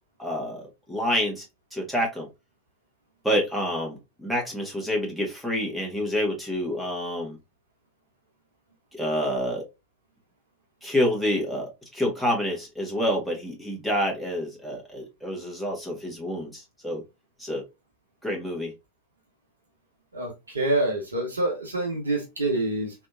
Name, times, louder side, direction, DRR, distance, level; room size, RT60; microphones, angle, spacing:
voice 1, 0.2-0.6 0.9-1.4 1.7-2.3 3.2-7.4 8.9-9.6 10.8-17.0 17.4-17.6 18.2-18.7, equal, ahead, 1.4 m, -28 dB
voice 2, 20.1-22.9, right 2 dB, 75° right, 1.2 m, -26 dB
3.3 x 2.7 x 2.3 m
figure-of-eight pair, 90°, 0 cm